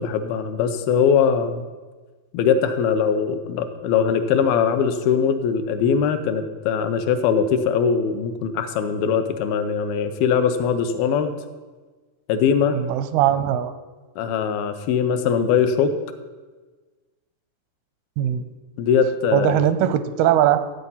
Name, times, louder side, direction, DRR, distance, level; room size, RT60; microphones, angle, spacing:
voice 1, 0.0-1.6 2.3-11.3 12.3-12.8 14.2-15.9 18.8-19.6, left 7 dB, 80° left, 8 dB, 2.6 m, -21 dB
voice 2, 12.7-13.7 18.2-18.4 19.3-20.6, right 11 dB, 85° right, 13 dB, 2.6 m, -20 dB
13.5 x 8.0 x 5.6 m, 1.3 s
omnidirectional pair, 4.4 m